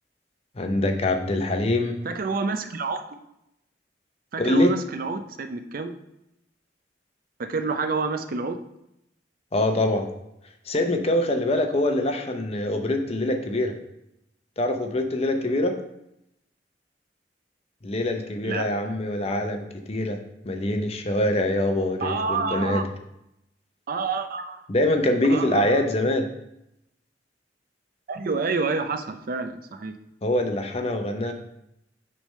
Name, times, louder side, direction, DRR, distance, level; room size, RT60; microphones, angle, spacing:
voice 1, 0.6-2.0 4.4-4.8 9.5-10.1 10.7-13.8 14.6-15.7 17.8-22.8 24.7-26.3 30.2-31.3, left 1 dB, 35° left, 5 dB, 0.7 m, -24 dB
voice 2, 2.0-3.0 4.3-5.9 7.4-8.6 18.4-18.7 22.0-22.8 23.9-24.6 25.3-25.9 28.1-29.9, right 4 dB, 55° right, 8 dB, 0.5 m, -28 dB
6.3 x 3.4 x 5.4 m, 0.83 s
head